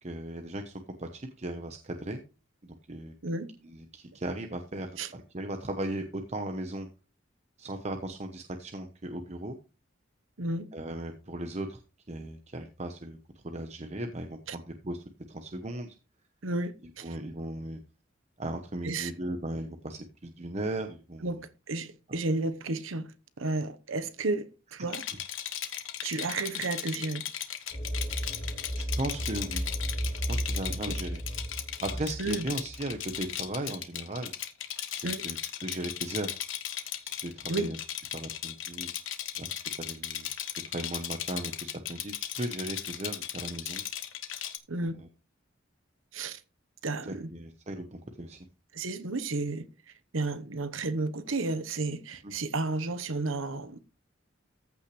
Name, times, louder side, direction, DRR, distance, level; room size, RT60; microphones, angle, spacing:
voice 1, 0.0-2.2 2.6-3.1 3.7-6.9 7.6-9.6 10.7-11.8 12.1-13.2 13.4-16.0 17.0-17.8 18.4-21.3 22.1-22.2 28.8-29.7 30.3-31.2 31.8-34.3 34.9-35.4 35.6-36.4 37.0-37.8 38.1-38.9 39.4-43.8 45.0-45.1 47.1-48.4 52.2-52.3, right 1 dB, 35° right, 0.9 m, -37 dB
voice 2, 10.4-10.7 14.5-14.6 16.4-17.1 18.8-19.1 21.2-21.4 21.7-25.0 26.0-27.2 30.7-31.0 32.2-32.5 35.0-35.2 37.5-37.7 44.7-45.0 46.1-46.4 46.8-47.3 48.7-49.7 50.1-53.8, right 2 dB, 85° right, 1.1 m, -32 dB
Rattle, 24.9-44.6, left 11 dB, 75° left, 1.2 m, -37 dB
sound 1, 27.7-33.3, right 1 dB, 35° left, 2.4 m, -34 dB
14.5 x 5.9 x 3.2 m
head